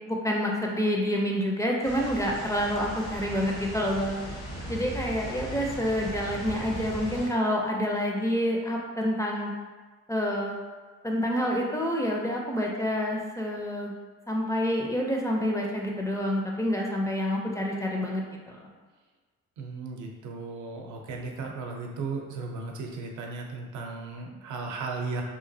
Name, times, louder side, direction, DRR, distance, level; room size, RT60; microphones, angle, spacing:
voice 1, 0.1-4.2 4.7-9.5 10.1-10.6 11.0-13.9 14.3-18.6, equal, 10° left, -1 dB, 0.4 m, -28 dB
sound 1, 1.8-7.3, right 1 dB, 80° left, 1.3 m, -38 dB
voice 2, 19.6-25.2, right 3 dB, 75° right, 1 dB, 0.6 m, -36 dB
3.0 x 2.3 x 2.6 m, 1.4 s
cardioid pair, 90°, 30 cm